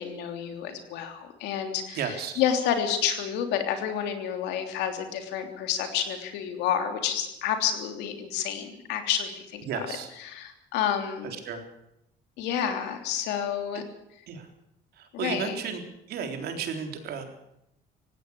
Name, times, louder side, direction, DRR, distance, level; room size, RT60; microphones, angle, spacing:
voice 1, 0.0-11.3 12.4-13.8 15.1-15.6, left 9 dB, 90° left, 6 dB, 3.3 m, -29 dB
voice 2, 1.9-2.4 9.7-10.1 11.5-11.6 14.3-14.4 15.2-15.8 16.1-17.2, right 6 dB, 70° right, 5 dB, 3.8 m, -33 dB
18.5 x 16.5 x 8.5 m, 0.82 s
cardioid pair, 110°, 17 cm